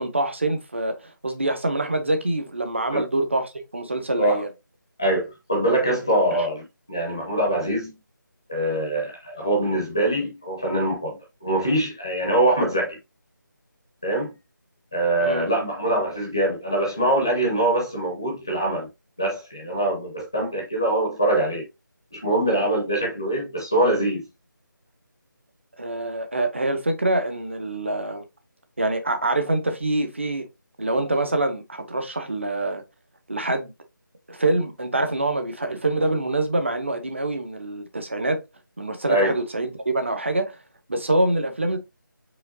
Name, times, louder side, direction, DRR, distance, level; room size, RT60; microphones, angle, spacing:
voice 1, 0.0-4.5 6.4-6.5 15.2-15.5 25.8-28.2 28.8-30.5 30.8-32.8 33.3-33.7 34.3-38.4 38.8-40.6 40.9-41.8, right 2 dB, 35° right, 0.7 m, -25 dB
voice 2, 5.0-8.0 8.5-13.0 14.0-14.3 14.9-18.9 19.2-21.7 22.1-24.2 39.1-39.3, right 1 dB, 10° left, 0.6 m, -23 dB
4.9 x 3.5 x 2.6 m
figure-of-eight pair, 180°, 11 cm